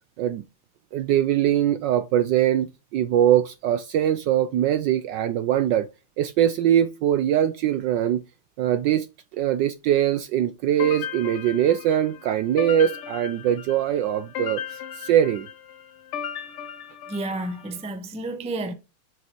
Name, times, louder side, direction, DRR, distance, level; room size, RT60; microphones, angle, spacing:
voice 1, 0.9-5.9 6.2-8.2 8.6-9.1 9.3-15.5, right 11 dB, 75° right, 1.0 m, -22 dB
sound 1, 10.8-17.7, left 8 dB, 85° left, 1.9 m, -36 dB
voice 2, 17.1-18.7, right 2 dB, 10° right, 0.4 m, -31 dB
6.8 x 6.6 x 3.0 m
omnidirectional pair, 2.4 m